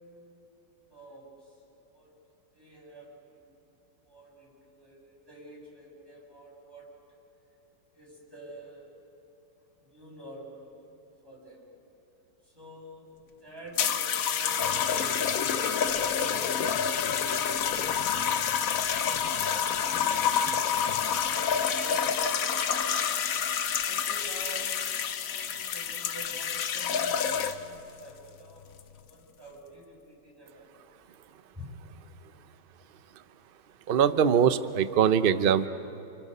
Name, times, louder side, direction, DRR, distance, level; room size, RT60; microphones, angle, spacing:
voice 1, 0.9-1.5 1.9-2.1 2.5-3.5 4.0-6.9 7.9-8.9 9.8-10.7 11.2-11.7 12.4-13.1 13.4-18.8 19.8-23.0 23.9-28.7 28.9-31.0 31.5-31.7, right 1 dB, 10° right, -4 dB, 7.5 m, -48 dB
sound 1, 13.8-27.8 28.7-29.0, left 7 dB, 60° left, 1.1 m, -28 dB
voice 2, 33.9-35.7, right 8 dB, 50° right, 12 dB, 0.6 m, -22 dB
29.5 x 29.5 x 5.5 m, 2.9 s
omnidirectional pair, 1.9 m